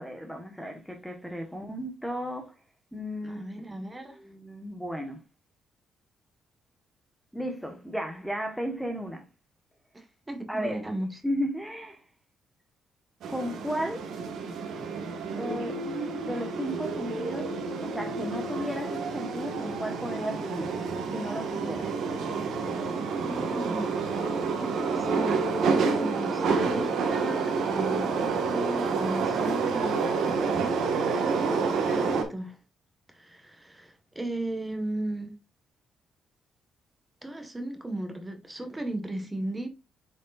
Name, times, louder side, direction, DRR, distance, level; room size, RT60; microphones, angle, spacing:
voice 1, 0.0-2.5 2.9-3.6 4.0-5.2 7.3-9.2 10.5-10.8 11.2-12.0 13.3-14.1 15.4-15.9 16.2-17.5 17.8-20.7 21.1-22.0 25.8-26.5, equal, ahead, 1.4 m, -34 dB
voice 2, 3.2-4.2 9.9-11.1 23.2-24.0 24.4-31.1 31.6-32.6 33.1-35.3 37.2-39.7, right 1 dB, 15° right, 1.5 m, -36 dB
sound 1, 13.2-32.2, right 4 dB, 75° right, 1.6 m, -29 dB
8.4 x 5.2 x 2.5 m
cardioid pair, 90°, 0 cm